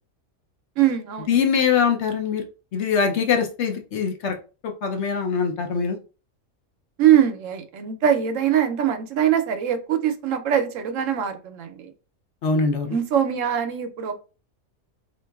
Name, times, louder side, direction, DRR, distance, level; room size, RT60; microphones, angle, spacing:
voice 1, 0.8-1.4 7.0-11.9 12.9-14.2, right 9 dB, 75° right, 8 dB, 0.9 m, -22 dB
voice 2, 1.3-2.4 2.7-4.4 4.6-6.0 12.4-12.9, left 6 dB, 65° left, 3 dB, 0.9 m, -22 dB
3.8 x 2.8 x 2.3 m, 0.34 s
omnidirectional pair, 1.4 m